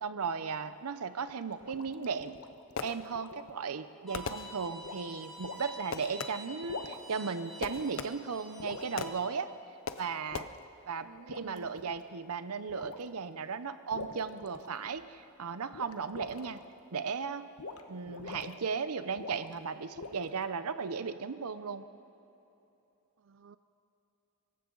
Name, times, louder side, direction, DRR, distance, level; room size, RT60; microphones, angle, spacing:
voice 1, 0.0-2.4 2.8-9.5 10.0-10.5 10.9-16.6 16.9-17.4 17.9-21.9, right 5 dB, 85° right, 12 dB, 0.7 m, -36 dB
sound 1, 1.3-3.6 4.8-5.1 5.4-5.6 6.5-7.2 7.6-8.2 8.6-8.9 10.3-10.6 11.2-12.0 12.7-13.1 13.9-15.1 15.7-16.6 17.6-17.8 18.1-18.5 19.2-19.6 20.0-20.4, left 3 dB, 85° left, 1.1 m, -45 dB
Fireworks, 2.2-3.4 4.1-5.0 5.9-6.6 7.6-8.5 9.0-9.4 9.9-10.4, left 5 dB, 60° left, 0.6 m, -40 dB
Bowed string instrument, 4.1-9.1, right 2 dB, ahead, 3.2 m, -48 dB
voice 2, 11.0-11.7 23.3-23.6, right 6 dB, 55° right, 12 dB, 0.4 m, -51 dB
24.5 x 14.5 x 3.9 m, 3.0 s
head